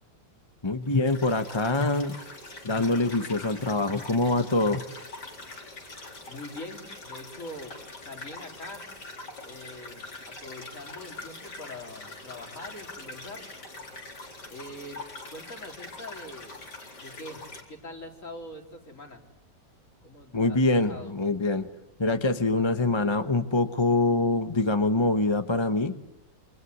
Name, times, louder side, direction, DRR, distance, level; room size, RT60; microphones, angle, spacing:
voice 1, 0.6-2.2 2.6-4.8 20.3-21.7 22.0-25.9, left 2 dB, 20° left, 9 dB, 1.0 m, -24 dB
sound 1, 0.9-17.6, left 2 dB, 70° left, 4.7 m, -43 dB
voice 2, 6.2-7.8 8.0-8.9 9.4-13.5 14.5-16.6 17.0-17.4 17.7-19.2 20.0-21.2, left 1 dB, 45° left, 3 dB, 4.2 m, -43 dB
28.0 x 25.5 x 8.2 m, 0.90 s
omnidirectional pair, 1.9 m